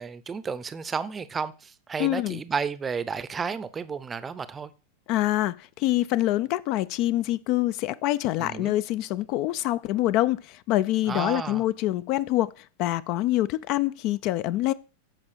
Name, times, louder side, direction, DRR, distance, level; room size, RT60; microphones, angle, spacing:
voice 1, 0.0-4.7 8.4-8.7 11.1-11.6, right 5 dB, 20° right, 0.7 m, -32 dB
voice 2, 2.0-2.4 5.1-12.5 12.8-14.7, left 15 dB, 40° left, 0.4 m, -25 dB
14.0 x 5.2 x 5.0 m
figure-of-eight pair, 90°, 0 cm